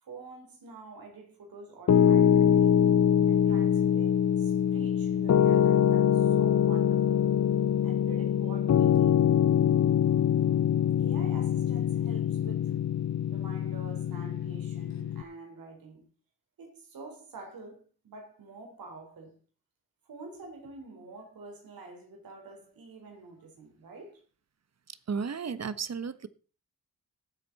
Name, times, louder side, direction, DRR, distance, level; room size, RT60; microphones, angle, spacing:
voice 1, 0.0-2.8 3.3-7.3 7.8-9.3 11.0-12.8 13.3-16.1 16.6-19.4 20.0-24.2, right 3 dB, 75° right, 4.5 m, -47 dB
Piano, 1.9-15.2, left 9 dB, 50° left, 0.7 m, -24 dB
voice 2, 24.9-26.3, right 5 dB, 45° right, 1.3 m, -34 dB
18.0 x 7.8 x 4.2 m
cardioid pair, 65°, 35 cm